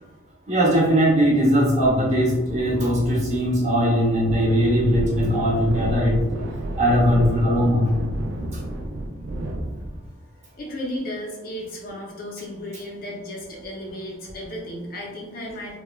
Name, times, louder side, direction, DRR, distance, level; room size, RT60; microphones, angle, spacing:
voice 1, 0.5-6.2 6.8-8.0, equal, 35° right, -5 dB, 0.7 m, -20 dB
sound 1, 1.8-10.1, right 1 dB, 80° right, 0.4 m, -31 dB
voice 2, 10.6-15.8, left 1 dB, 50° left, -2 dB, 0.6 m, -34 dB
3.1 x 2.1 x 2.2 m, 1.1 s
head